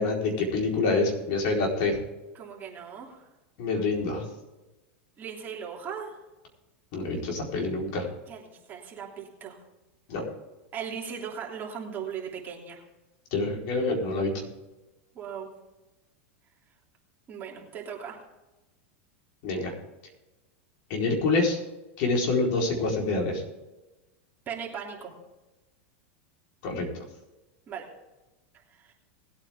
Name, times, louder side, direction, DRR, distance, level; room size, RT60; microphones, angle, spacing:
voice 1, 0.0-2.0 3.6-4.2 6.9-8.1 10.1-10.2 13.3-14.4 19.4-19.7 20.9-21.6 22.0-23.4 26.6-27.0, left 3 dB, 55° left, 0 dB, 4.3 m, -26 dB
voice 2, 2.3-3.3 5.2-6.2 8.3-9.6 10.7-12.8 15.1-15.5 17.3-18.2 24.5-25.1 27.7-27.9 28.8-28.9, right 7 dB, 30° right, -2 dB, 3.1 m, -38 dB
20.0 x 8.8 x 3.7 m, 1.1 s
supercardioid pair, 130°, 7 cm